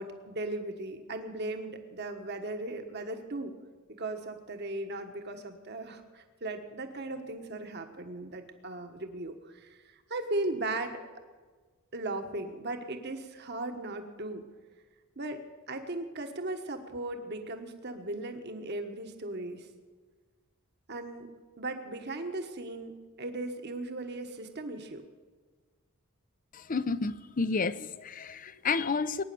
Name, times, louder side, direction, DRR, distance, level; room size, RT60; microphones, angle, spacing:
voice 1, 0.0-3.5 4.0-11.0 11.9-14.4 15.2-15.4 15.7-19.7 20.9-21.3 21.6-22.9 23.2-25.0, right 2 dB, 50° right, 5 dB, 1.4 m, -37 dB
voice 2, 26.5-29.2, left 4 dB, 40° left, 15 dB, 0.6 m, -31 dB
20.5 x 9.9 x 6.9 m, 1.4 s
head